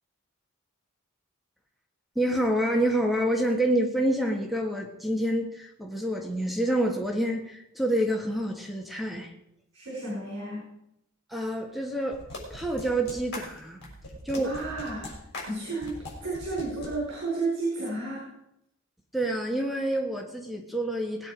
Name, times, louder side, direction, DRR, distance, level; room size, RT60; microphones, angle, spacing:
voice 1, 2.1-9.3 11.3-13.8 14.2-14.5 19.1-21.3, right 1 dB, ahead, 1 dB, 1.5 m, -27 dB
voice 2, 9.7-10.7 14.3-18.3, right 3 dB, 60° right, -4 dB, 5.1 m, -32 dB
sound 1, 12.1-16.9, left 1 dB, 55° left, 6.1 m, -40 dB
20.0 x 9.4 x 5.1 m, 0.81 s
head